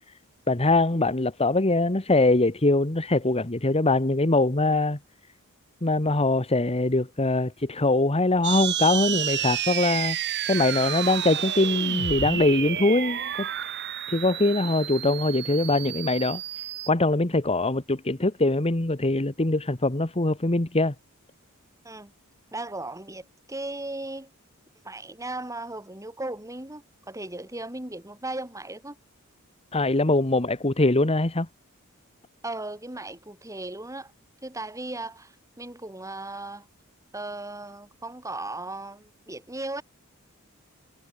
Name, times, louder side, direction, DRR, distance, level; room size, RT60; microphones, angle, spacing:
voice 1, 0.5-5.0 5.8-10.2 10.5-13.5 14.1-16.4 16.9-20.9 29.7-31.5, left 2 dB, 30° left, 1.5 m, -23 dB
sound 1, 8.4-16.9, right 10 dB, 55° right, 2.2 m, -30 dB
voice 2, 22.5-24.3 24.8-29.0 32.4-34.1 34.4-36.7 37.1-39.8, right 2 dB, 15° right, 7.4 m, -37 dB
head